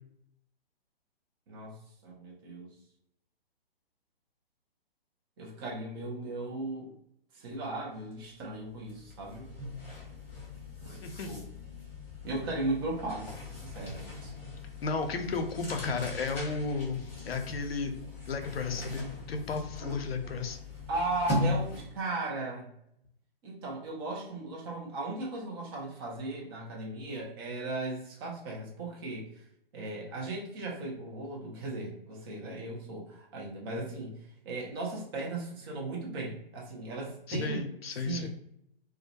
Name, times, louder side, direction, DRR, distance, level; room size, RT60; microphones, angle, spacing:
voice 1, 2.0-2.7 5.4-6.9 7.3-9.5 10.8-11.5 12.2-14.3 20.9-22.7 23.4-29.3 29.7-37.6 38.0-38.3, right 2 dB, 25° right, -2 dB, 0.5 m, -37 dB
sound 1, 8.1-8.3 8.6-22.0, left 2 dB, 5° left, 0.9 m, -39 dB
voice 2, 11.0-11.3 14.8-17.9 18.3-20.6 37.3-38.3, left 4 dB, 75° left, 5 dB, 0.5 m, -33 dB
2.3 x 2.1 x 2.6 m, 0.75 s
figure-of-eight pair, 130°, 30 cm